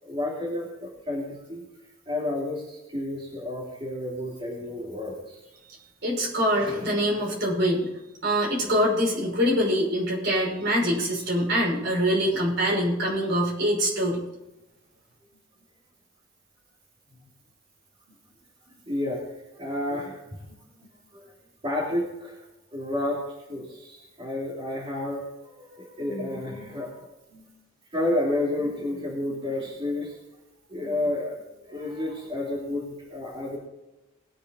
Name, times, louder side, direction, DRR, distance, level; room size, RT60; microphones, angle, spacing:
voice 1, 0.0-1.6 2.1-5.4 18.8-19.2 19.6-20.2 20.5-20.9 21.1-21.2 21.6-22.4 22.7-23.2 23.5-27.5 27.9-30.2 30.7-31.3 31.7-33.6, left 1 dB, 25° right, -6 dB, 3.3 m, -31 dB
voice 2, 6.0-7.9 8.2-14.2, equal, 55° right, -2 dB, 5.9 m, -24 dB
21.0 x 8.4 x 4.0 m, 0.98 s
head